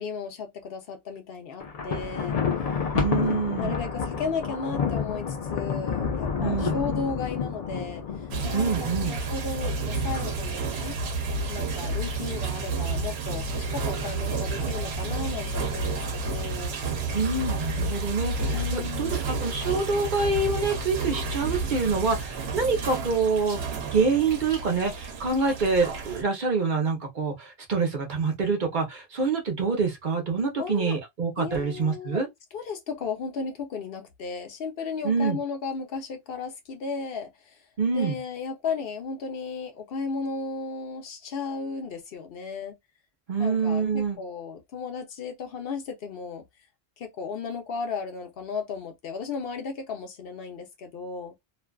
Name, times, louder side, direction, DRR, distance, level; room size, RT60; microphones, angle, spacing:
voice 1, 0.0-2.4 3.6-8.0 8.4-10.9 11.5-16.8 18.5-19.2 30.6-31.0 31.4-32.2 32.5-37.6 37.9-42.8 43.4-46.4 47.0-51.3, left 5 dB, 70° left, 0.8 m, -34 dB
Thunder, 1.6-8.8, left 6 dB, 50° left, 0.5 m, -29 dB
voice 2, 2.9-3.7 6.4-6.8 8.5-9.2 17.1-23.6 23.9-32.3 35.0-35.4 37.8-38.2 43.3-44.2, right 4 dB, 55° right, 0.8 m, -26 dB
sound 1, 8.3-26.2, right 3 dB, 90° right, 0.9 m, -30 dB
2.5 x 2.3 x 2.2 m
omnidirectional pair, 1.0 m